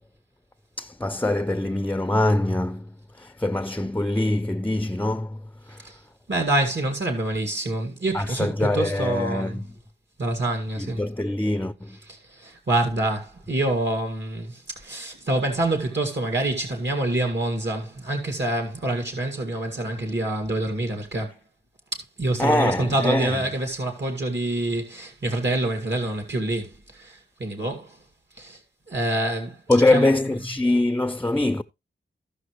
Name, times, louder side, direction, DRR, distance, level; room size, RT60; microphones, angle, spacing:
voice 1, 0.8-5.4 5.7-5.8 8.1-9.7 10.8-12.0 22.4-23.4 29.7-31.6, left 2 dB, 10° left, 0.5 m, -23 dB
voice 2, 6.3-9.6 10.2-11.0 12.4-21.3 22.2-26.7 27.0-27.9 28.4-28.6 28.9-29.5 29.9-30.1, right 2 dB, 60° right, 2.1 m, -26 dB
15.0 x 5.8 x 3.1 m
wide cardioid pair, 85°, 20 cm